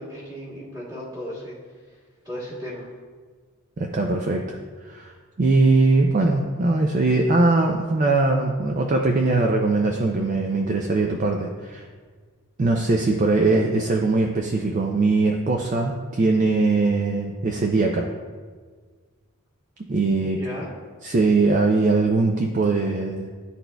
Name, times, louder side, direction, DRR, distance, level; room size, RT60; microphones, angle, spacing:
voice 1, 0.0-1.6 2.3-2.9 20.1-20.7, equal, 15° right, -7 dB, 1.7 m, -35 dB
voice 2, 3.8-4.6 4.8-5.1 5.4-11.8 12.6-18.1 19.9-20.4 21.0-23.3, right 3 dB, 35° right, 2 dB, 0.4 m, -21 dB
10.5 x 4.1 x 2.2 m, 1.5 s
head